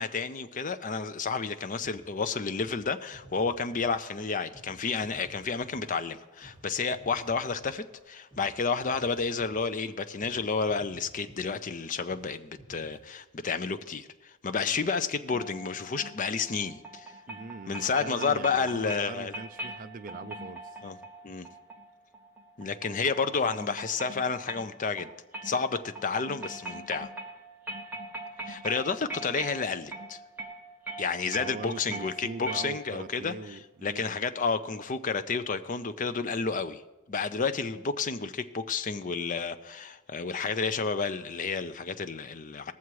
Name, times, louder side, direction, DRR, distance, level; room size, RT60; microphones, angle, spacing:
voice 1, 0.0-17.1 17.7-19.3 20.8-21.0 21.2-21.5 22.6-25.1 25.4-27.1 28.4-30.2 31.0-36.8 37.1-42.7, left 5 dB, 35° left, 0.5 m, -31 dB
sound 1, 1.8-2.4 2.6-2.9 3.1-4.3 4.5-12.3 12.6-13.0, right 2 dB, 20° left, 3.8 m, -54 dB
sound 2, 15.3-33.2, right 2 dB, 10° right, 1.3 m, -42 dB
voice 2, 17.3-20.8 31.2-34.2, right 4 dB, 35° right, 0.4 m, -42 dB
19.0 x 7.1 x 4.7 m
head